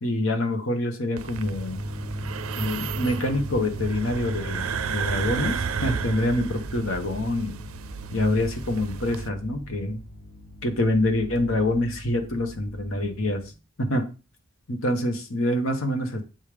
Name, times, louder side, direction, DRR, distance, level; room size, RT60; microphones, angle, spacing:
voice 1, 0.0-1.8 2.6-7.5 8.1-10.0 10.6-13.4 13.8-14.0 14.7-16.2, left 1 dB, 65° left, 5 dB, 1.3 m, -26 dB
sound 1, 1.2-9.3, right 6 dB, 70° right, 0.5 m, -33 dB
sound 2, 1.4-13.5, equal, 85° left, 2.6 m, -38 dB
7.4 x 3.6 x 5.0 m, 0.32 s
head